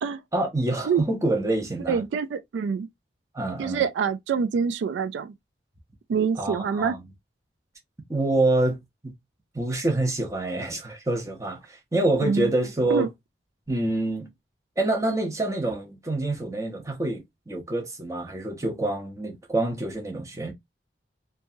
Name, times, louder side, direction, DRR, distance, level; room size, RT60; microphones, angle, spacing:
voice 1, 0.3-2.0 3.3-3.8 6.4-7.0 8.1-9.1 9.5-13.1 13.7-14.3 14.8-20.5, right 2 dB, 15° right, 0.7 m, -26 dB
voice 2, 1.9-2.9 3.6-5.3 6.1-6.9 12.2-12.5 12.9-13.1, right 6 dB, 80° right, 0.3 m, -25 dB
2.9 x 2.3 x 2.6 m
head